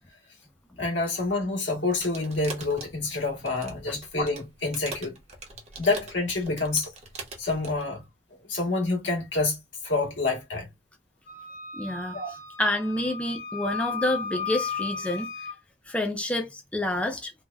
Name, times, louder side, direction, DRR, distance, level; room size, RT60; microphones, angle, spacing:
voice 1, 0.8-5.2 5.8-6.9 7.4-8.0 8.5-9.6 9.8-10.7 12.1-12.3, left 3 dB, 75° left, 1.5 m, -27 dB
sound 1, 1.9-7.8, right 2 dB, 35° right, 0.8 m, -42 dB
Wind instrument woodwind instrument, 11.3-15.6, left 6 dB, 40° left, 1.1 m, -35 dB
voice 2, 11.7-12.2 12.6-15.3 15.9-17.3, left 1 dB, 5° left, 0.4 m, -28 dB
3.2 x 2.1 x 2.3 m
head